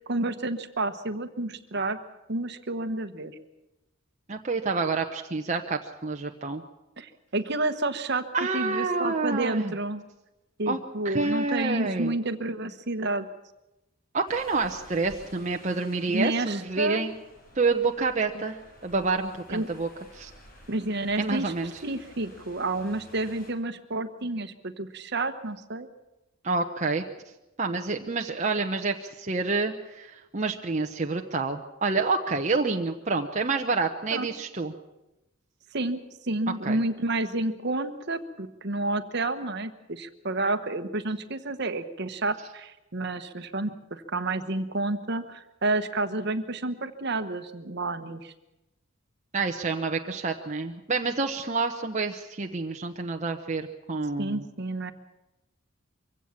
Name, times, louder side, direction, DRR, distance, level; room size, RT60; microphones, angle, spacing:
voice 1, 0.0-2.0 2.3-3.3 7.0-8.2 8.5-10.0 10.6-13.3 16.1-17.0 19.5-19.7 20.7-21.5 21.8-25.9 34.1-34.3 35.7-48.3 54.2-54.9, right 2 dB, 55° right, 10 dB, 1.2 m, -30 dB
voice 2, 4.3-6.6 8.3-9.7 10.7-10.8 11.0-12.2 14.1-17.1 17.5-20.3 21.2-21.7 26.4-27.0 27.6-34.7 36.6-36.8 49.3-54.4, right 3 dB, 35° right, 3 dB, 0.9 m, -28 dB
sound 1, 14.3-23.5, left 1 dB, 45° left, 4.7 m, -52 dB
23.5 x 16.5 x 7.3 m, 0.97 s
head